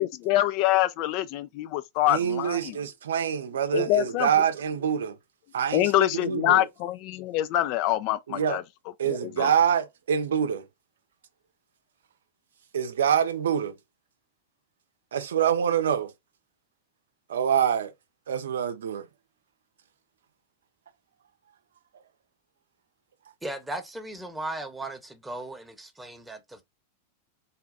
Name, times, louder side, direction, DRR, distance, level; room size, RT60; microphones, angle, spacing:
voice 1, 0.0-2.8 3.7-4.3 5.7-8.6 9.1-9.5, left 14 dB, 45° left, 0.4 m, -25 dB
voice 2, 2.1-5.2 5.5-6.7 8.3-8.6 9.0-10.7 12.7-13.7 15.1-16.1 17.3-17.9 18.3-19.1, right 8 dB, 65° right, 0.7 m, -26 dB
voice 3, 23.4-26.6, right 2 dB, 10° right, 0.9 m, -37 dB
4.1 x 2.3 x 3.9 m
figure-of-eight pair, 90°, 0 cm